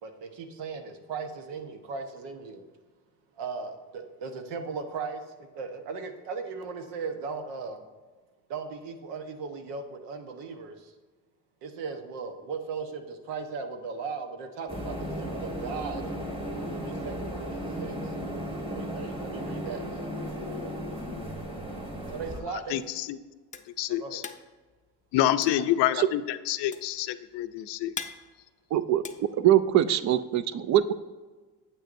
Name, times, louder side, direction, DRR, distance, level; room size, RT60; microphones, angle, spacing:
voice 1, 0.0-2.6 3.4-7.9 8.5-10.9 11.6-16.1 16.6-18.1 18.7-20.1 22.1-22.8 24.0-24.3, right 5 dB, 85° right, 6 dB, 1.1 m, -37 dB
sound 1, 14.7-22.4, equal, 15° right, 1.4 m, -35 dB
voice 2, 22.7-23.2 23.8-24.2 25.1-27.9, left 13 dB, 80° left, 12 dB, 0.6 m, -27 dB
sound 2, 22.9-30.0, left 6 dB, 20° left, 0.4 m, -43 dB
voice 3, 28.7-29.0 29.4-30.9, right 12 dB, 45° right, 15 dB, 0.4 m, -22 dB
9.1 x 8.2 x 2.6 m, 1.3 s
cardioid pair, 120°, 41 cm